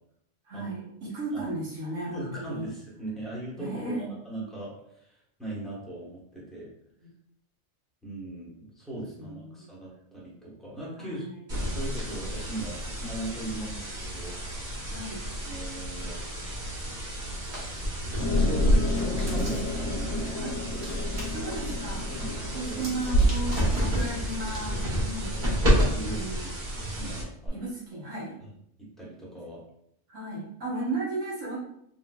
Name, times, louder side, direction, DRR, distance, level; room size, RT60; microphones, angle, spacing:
voice 1, 0.4-2.7 3.6-4.2 9.2-9.7 11.0-11.4 13.6-13.8 14.9-15.3 20.4-20.5 21.2-22.1 22.5-24.8 25.0-25.4 26.1-26.5 27.5-28.4 30.1-31.6, right 2 dB, 75° right, -4 dB, 1.5 m, -35 dB
voice 2, 2.1-6.7 8.0-11.2 11.5-14.4 15.4-16.2 18.3-21.0 22.1-23.0 24.0-24.1 25.8-26.6 26.9-27.6 28.8-29.6, right 1 dB, ahead, -6 dB, 1.0 m, -39 dB
sound 1, 11.5-27.5, equal, 40° right, 1.2 m, -31 dB
Hands, 17.3-17.8 18.5-19.8 20.7-21.5 22.7-24.7, right 1 dB, 60° right, 1.3 m, -44 dB
sound 2, 18.2-26.2, equal, 60° left, 0.9 m, -29 dB
3.5 x 3.1 x 2.3 m, 0.73 s
omnidirectional pair, 1.3 m